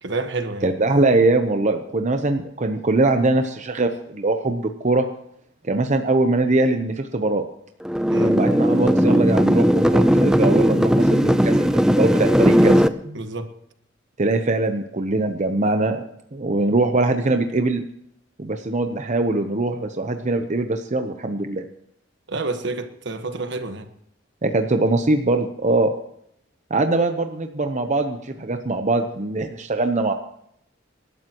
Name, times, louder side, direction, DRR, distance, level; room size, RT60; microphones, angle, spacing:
voice 1, 0.0-0.7 8.1-8.4 13.1-13.5 22.3-23.9, right 3 dB, 65° right, 1.4 m, -29 dB
voice 2, 0.6-5.1 5.6-7.5 8.2-13.2 14.2-16.1 16.3-17.8 18.4-21.6 24.4-26.0 26.7-30.1, right 2 dB, 40° right, 0.8 m, -22 dB
sound 1, 7.8-12.9, equal, 5° right, 0.6 m, -17 dB
27.0 x 12.5 x 3.0 m
head